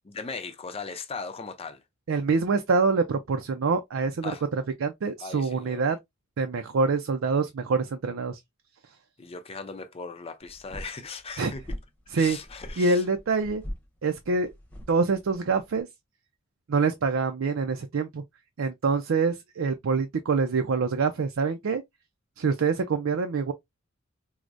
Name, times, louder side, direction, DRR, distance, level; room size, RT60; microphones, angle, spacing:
voice 1, 0.0-1.8 4.2-4.4 5.2-5.8 9.2-11.6 12.1-13.0, left 4 dB, 30° left, 0.5 m, -38 dB
voice 2, 2.1-6.0 6.4-8.4 11.4-11.5 12.1-12.4 12.8-13.6 14.0-14.5 14.9-15.9 16.7-18.2 18.6-21.8 22.4-23.5, right 4 dB, 85° right, 0.5 m, -25 dB
sound 1, 10.4-15.8, equal, 10° left, 0.9 m, -42 dB
4.7 x 2.1 x 2.5 m
head